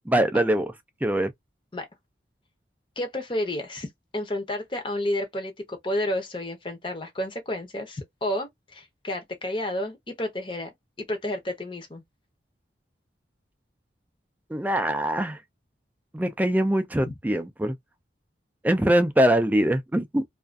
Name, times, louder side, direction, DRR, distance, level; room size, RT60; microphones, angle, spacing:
voice 1, 0.1-0.7 1.0-1.3 14.5-15.4 16.1-17.8 18.6-20.2, right 1 dB, 10° right, 0.3 m, -23 dB
voice 2, 3.0-10.7 11.1-12.0, left 1 dB, 25° left, 0.6 m, -31 dB
2.5 x 2.3 x 2.2 m
head